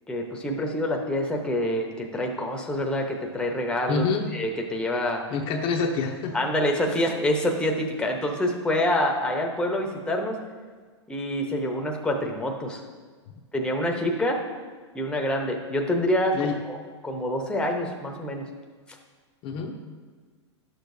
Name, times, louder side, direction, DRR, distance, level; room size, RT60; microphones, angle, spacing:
voice 1, 0.1-4.0 4.3-5.2 6.3-10.4 11.1-12.8 13.5-14.4 14.9-16.8 17.0-18.5, left 1 dB, 5° left, 2 dB, 0.9 m, -26 dB
voice 2, 3.9-4.3 5.3-6.4 16.3-16.6 19.4-19.7, left 5 dB, 35° left, 3 dB, 0.7 m, -27 dB
11.5 x 6.7 x 2.7 m, 1.5 s
hypercardioid pair, 120°, 15 cm